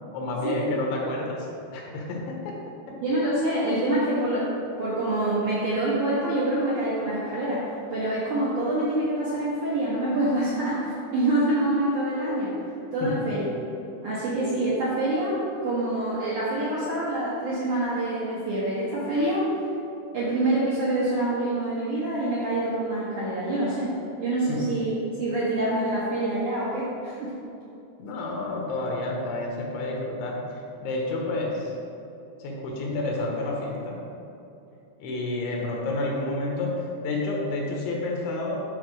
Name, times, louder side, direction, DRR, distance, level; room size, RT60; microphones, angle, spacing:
voice 1, 0.1-1.5 1.7-2.6 2.9-3.0 13.0-13.3 24.5-24.7 28.0-31.7 32.4-34.0 35.0-38.6, left 2 dB, 75° left, -1 dB, 3.1 m, -30 dB
voice 2, 3.0-12.6 12.9-13.4 14.0-19.5 20.1-24.9 25.2-27.3, right 1 dB, 65° right, -9 dB, 2.0 m, -26 dB
10.0 x 4.2 x 6.2 m, 2.7 s
omnidirectional pair, 5.8 m